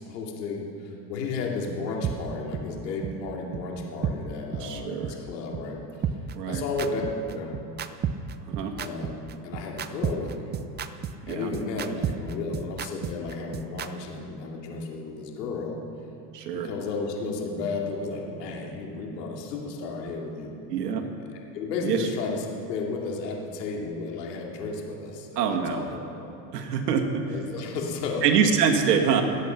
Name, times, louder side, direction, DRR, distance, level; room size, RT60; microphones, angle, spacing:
voice 1, 0.0-5.8 6.5-7.1 7.3-7.5 8.8-10.5 11.3-15.8 16.5-20.5 21.3-25.8 26.2-26.3 27.3-28.2, left 3 dB, 85° left, 0 dB, 2.7 m, -33 dB
sound 1, 2.0-2.1 2.5-2.6 3.0-3.1 3.5-3.6 4.0-4.1 4.5-4.6 5.0-5.1 5.5-5.6 6.0-13.9, right 8 dB, 20° right, 0.5 m, -30 dB
voice 2, 4.6-5.1 6.3-6.6 8.5-8.7 11.2-11.5 16.3-16.7 20.7-21.1 21.8-22.1 25.4-25.9 26.5-27.0 28.2-29.2, right 7 dB, 85° right, 4 dB, 1.9 m, -25 dB
19.5 x 8.5 x 5.9 m, 2.8 s
supercardioid pair, 110°, 47 cm